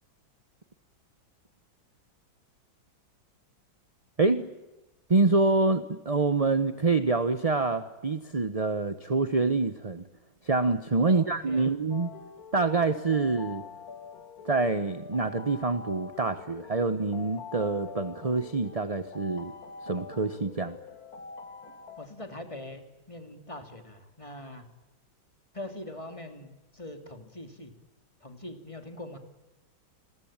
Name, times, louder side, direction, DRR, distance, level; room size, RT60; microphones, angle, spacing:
voice 1, 5.1-10.1 10.4-12.1 12.5-13.6 14.4-19.5 19.8-20.8, right 3 dB, 25° right, 11 dB, 0.8 m, -26 dB
voice 2, 11.0-11.8 22.0-24.6 25.5-27.7 28.2-29.2, left 1 dB, 15° left, 6 dB, 2.8 m, -42 dB
sound 1, 11.9-22.1, left 5 dB, 50° left, 2.1 m, -45 dB
29.5 x 22.0 x 8.9 m, 1.0 s
omnidirectional pair, 2.2 m